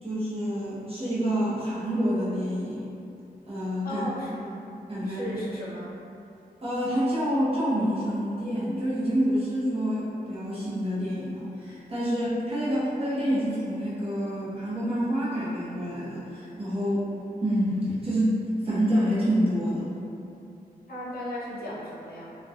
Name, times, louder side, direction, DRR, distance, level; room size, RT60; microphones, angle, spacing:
voice 1, 0.0-2.8 3.5-4.0 4.9-5.4 6.6-17.1 17.4-19.9, equal, 35° right, -9 dB, 0.8 m, -27 dB
voice 2, 3.8-4.6 5.0-5.9 20.9-22.4, left 1 dB, 65° left, -7 dB, 0.6 m, -36 dB
2.6 x 2.2 x 2.3 m, 2.6 s
wide cardioid pair, 90°, 16 cm